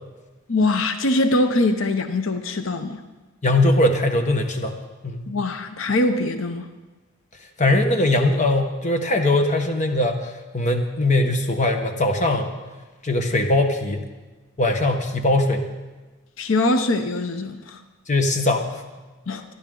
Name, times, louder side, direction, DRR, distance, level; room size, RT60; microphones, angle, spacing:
voice 1, 0.5-3.0 5.3-6.7 16.4-17.8 19.3-19.4, left 2 dB, 80° left, 8 dB, 0.8 m, -22 dB
voice 2, 3.4-4.8 5.0-5.3 7.6-12.5 13.0-14.1 14.6-15.7 18.1-18.7, left 2 dB, 35° left, 5 dB, 1.3 m, -20 dB
24.5 x 10.5 x 3.8 m, 1.2 s
head